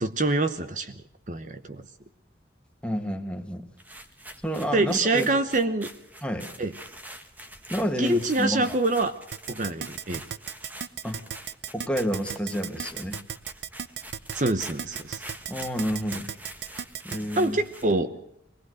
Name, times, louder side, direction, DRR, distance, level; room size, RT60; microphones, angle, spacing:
voice 1, 0.0-1.0 1.3-1.8 4.7-5.9 6.6-6.7 8.0-9.1 9.5-10.2 14.3-15.2 17.4-18.2, right 2 dB, 40° right, 10 dB, 0.9 m, -25 dB
voice 2, 2.8-3.7 4.4-5.3 6.2-6.5 7.7-8.8 11.0-11.2 11.7-13.2 15.5-16.3 17.0-17.6, equal, 5° left, 4 dB, 1.9 m, -29 dB
sound 1, 3.8-18.0, right 1 dB, 10° right, 1.3 m, -45 dB
Keyboard (musical), 9.3-17.2, right 8 dB, 70° right, 0.7 m, -34 dB
24.0 x 19.5 x 6.4 m, 0.76 s
head